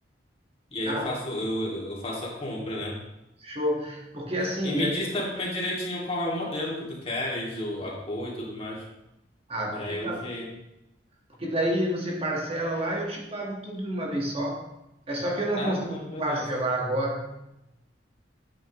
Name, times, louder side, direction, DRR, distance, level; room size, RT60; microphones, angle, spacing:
voice 1, 0.7-3.0 4.6-8.8 9.7-10.5 15.6-16.6, left 1 dB, 35° left, -3 dB, 2.3 m, -32 dB
voice 2, 3.4-4.9 9.5-10.2 11.4-14.6 15.1-17.3, right 1 dB, 35° right, -1 dB, 1.5 m, -29 dB
10.0 x 8.7 x 3.0 m, 0.91 s
head